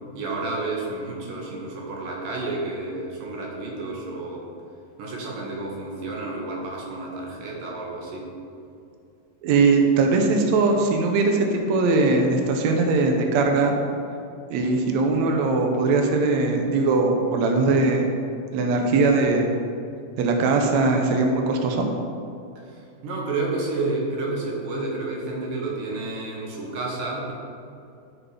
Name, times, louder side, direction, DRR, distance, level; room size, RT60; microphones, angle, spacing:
voice 1, 0.2-4.5 5.0-8.3 22.6-27.3, right 2 dB, 65° right, -2 dB, 3.0 m, -30 dB
voice 2, 9.4-13.7 14.5-18.1 18.5-19.5 20.2-21.9, right 3 dB, 85° right, 3 dB, 1.6 m, -20 dB
12.0 x 5.1 x 5.0 m, 2.5 s
omnidirectional pair, 4.5 m